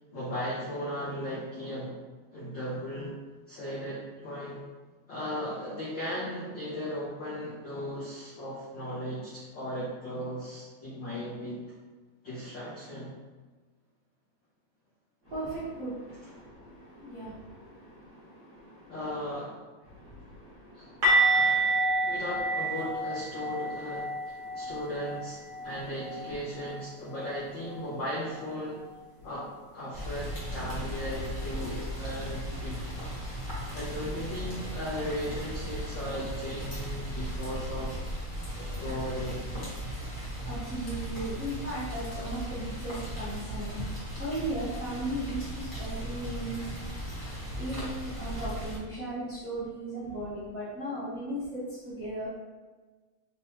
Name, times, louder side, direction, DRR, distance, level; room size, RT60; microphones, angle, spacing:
voice 1, 0.1-1.9 2.3-3.1 3.5-4.6 5.1-11.6 12.2-13.2 16.2-16.3 18.9-19.6 20.8-20.9 21.3-21.7 22.0-28.8 29.2-32.8 33.4-38.0 38.6-39.6, equal, 80° left, -8 dB, 1.0 m, -37 dB
voice 2, 15.2-19.0 19.8-21.7 22.0-22.2 24.4-24.9 25.5-25.8 26.3-26.4 29.2-29.3 40.4-43.8 44.2-46.6 47.6-52.3, right 1 dB, 80° right, -11 dB, 0.7 m, -37 dB
sound 1, 21.0-26.8 27.1-27.3 27.6-27.8 31.0-31.1, right 2 dB, 50° right, 1.1 m, -29 dB
Rain, 29.9-48.8, equal, 60° left, 0.5 m, -37 dB
5.2 x 3.1 x 3.0 m, 1.3 s
omnidirectional pair, 3.3 m